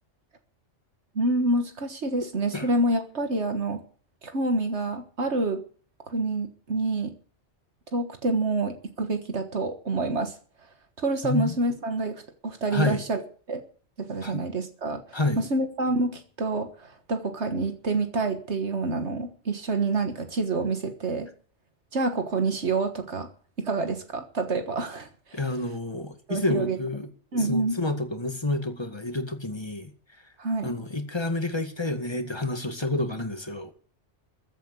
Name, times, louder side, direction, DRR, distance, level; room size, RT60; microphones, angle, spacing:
voice 1, 1.2-3.8 4.2-5.6 6.1-7.1 7.9-10.4 11.0-13.2 13.5-13.6 14.0-21.3 21.9-23.3 23.6-25.4 26.3-26.8 27.3-27.8 30.4-30.8, right 2 dB, 70° right, 1.8 m, -27 dB
voice 2, 11.2-11.5 12.7-13.0 14.2-14.4 15.1-15.4 25.3-27.1 27.4-29.9 30.6-33.7, left 2 dB, 20° left, 2.0 m, -29 dB
14.5 x 8.3 x 8.2 m
omnidirectional pair, 1.2 m